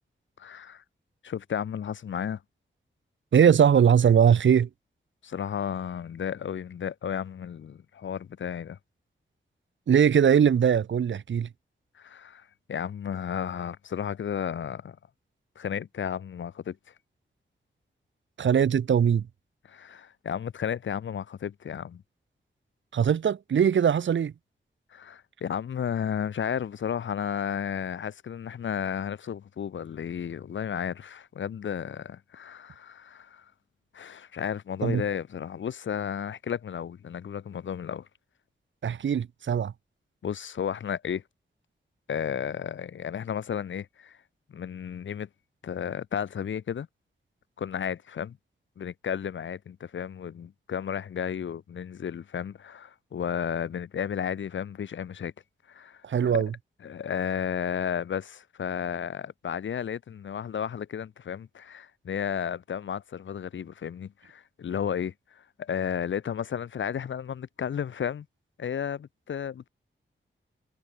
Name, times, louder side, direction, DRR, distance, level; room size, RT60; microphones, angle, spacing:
voice 1, 0.4-0.8 1.2-2.4 5.2-8.8 11.9-15.0 15.6-16.8 19.6-22.0 24.9-33.4 33.9-38.1 40.2-41.2 42.1-44.2 44.5-45.3 45.6-46.9 47.6-48.4 48.8-55.3 55.7-56.4 56.8-68.3 68.6-69.7, left 8 dB, 75° left, 0.9 m, -33 dB
voice 2, 3.3-4.7 9.9-11.5 18.4-19.3 22.9-24.3 34.8-35.0 38.8-39.7 56.0-56.5, right 8 dB, 75° right, 0.9 m, -21 dB
wide cardioid pair, 95°, 20 cm